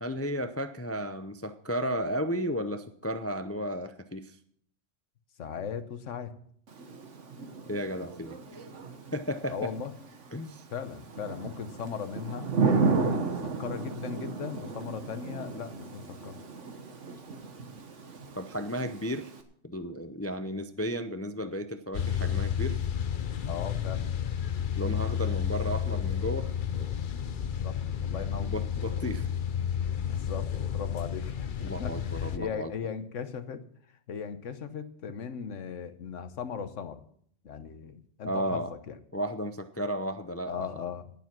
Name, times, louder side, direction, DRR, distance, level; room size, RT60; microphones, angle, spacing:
voice 1, 0.0-4.4 7.7-8.7 9.1-9.7 10.3-10.6 18.4-19.3 19.6-22.8 24.8-26.5 28.1-29.2 31.6-32.7 38.2-38.7 39.1-40.9, equal, 20° left, 9 dB, 0.4 m, -34 dB
voice 2, 5.4-6.3 9.5-9.9 10.7-12.5 13.0-16.4 23.5-24.1 27.4-28.5 30.1-31.3 31.8-33.6 34.1-37.0 37.4-39.0 40.5-41.1, left 7 dB, 80° left, 11 dB, 1.3 m, -38 dB
Thunder / Rain, 6.7-19.4, right 4 dB, 75° right, 1.7 m, -34 dB
sound 1, 21.9-32.4, left 8 dB, 50° left, 0.8 m, -31 dB
18.0 x 7.4 x 6.0 m, 0.65 s
omnidirectional pair, 1.3 m